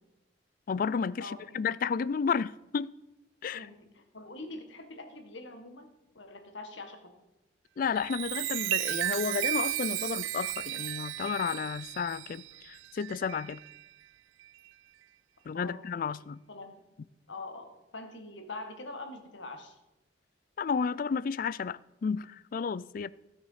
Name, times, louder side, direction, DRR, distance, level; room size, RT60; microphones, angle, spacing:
voice 1, 0.7-2.9 3.4-3.7 7.8-13.6 15.5-16.4 20.6-23.1, left 6 dB, 45° left, 0.3 m, -32 dB
voice 2, 3.5-5.9 6.1-7.1 15.5-15.8 16.5-16.8 17.3-19.8, left 2 dB, 80° left, 1.6 m, -44 dB
Chime, 7.8-13.8 14.4-14.7, right 16 dB, 85° right, 0.3 m, -34 dB
16.0 x 6.3 x 5.6 m
head